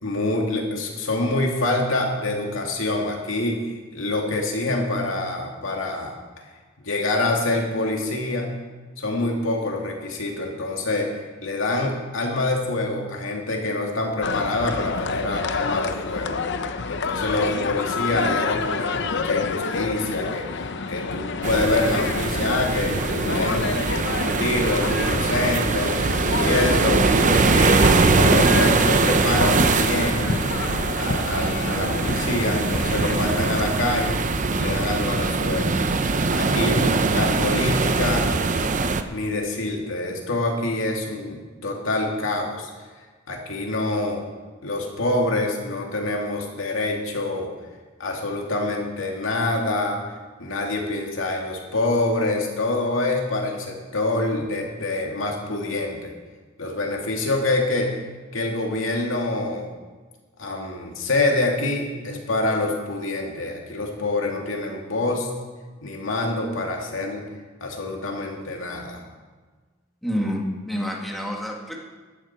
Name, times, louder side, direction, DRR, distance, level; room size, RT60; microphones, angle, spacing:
voice 1, 0.0-6.2 6.8-8.6 9.0-16.4 16.9-20.5 20.9-23.7 24.2-26.0 26.3-30.3 31.0-35.8 36.3-38.3 39.1-42.7 43.3-44.2 44.6-47.5 48.0-50.0 50.4-56.1 56.6-57.9 58.3-59.7 60.4-65.3 65.8-67.2 67.6-69.0, left 2 dB, 75° left, 0 dB, 2.5 m, -26 dB
sound 1, 14.2-33.7, left 4 dB, 60° left, 0.7 m, -29 dB
sound 2, 21.4-39.0, right 3 dB, 40° right, 0.7 m, -22 dB
voice 2, 70.0-71.8, equal, ahead, -1 dB, 1.9 m, -28 dB
14.5 x 11.5 x 4.4 m, 1.4 s
head